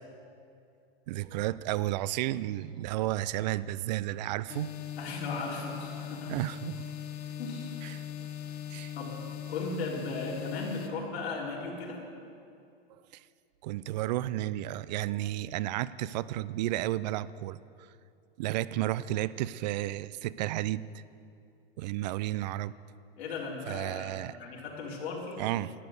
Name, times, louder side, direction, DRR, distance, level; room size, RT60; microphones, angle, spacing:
voice 1, 1.1-4.7 6.3-6.8 7.8-8.0 8.7-8.9 13.1-13.2 13.6-17.9 18.4-21.0 21.8-22.7 23.7-24.4 25.4-25.7, right 15 dB, 45° right, 18 dB, 0.4 m, -32 dB
sound 1, 4.5-10.9, left 9 dB, 40° left, 1.3 m, -40 dB
voice 2, 5.0-6.3 7.4-8.0 8.9-9.1 9.5-12.0 23.2-25.4, left 3 dB, 90° left, -3 dB, 3.9 m, -37 dB
12.5 x 10.5 x 7.8 m, 2.5 s
supercardioid pair, 155°, 31 cm